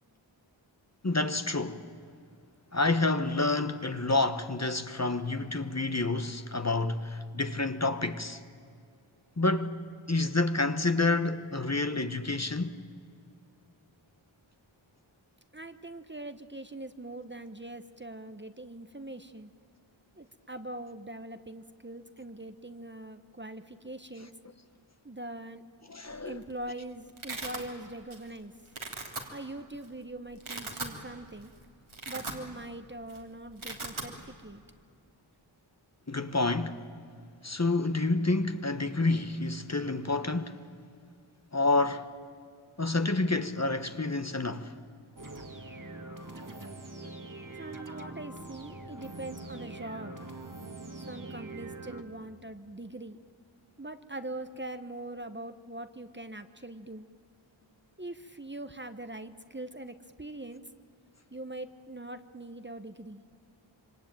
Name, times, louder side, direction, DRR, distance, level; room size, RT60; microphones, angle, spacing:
voice 1, 1.0-1.8 2.7-8.4 9.4-12.8 24.2-24.3 25.9-26.5 36.1-36.8 37.4-40.6 41.5-42.1 42.8-44.7, left 2 dB, 35° left, 1.3 m, -29 dB
voice 2, 15.5-19.5 20.2-24.3 25.0-25.6 26.3-28.5 29.3-31.5 32.1-34.6 47.5-50.3 51.1-53.2 53.8-57.1 58.0-60.6 61.3-63.2, right 1 dB, 25° right, 1.1 m, -42 dB
Domestic sounds home sounds, 26.2-26.5 26.8-27.6 28.1-28.4 28.7-29.2 29.8-29.9 30.3-31.0 31.4-31.5 31.8-32.8 33.0-33.2 33.4-34.1, right 3 dB, 80° right, 3.3 m, -38 dB
sound 1, 45.2-52.0, right 2 dB, 40° right, 2.0 m, -43 dB
26.5 x 24.5 x 9.1 m
wide cardioid pair, 40°, 48 cm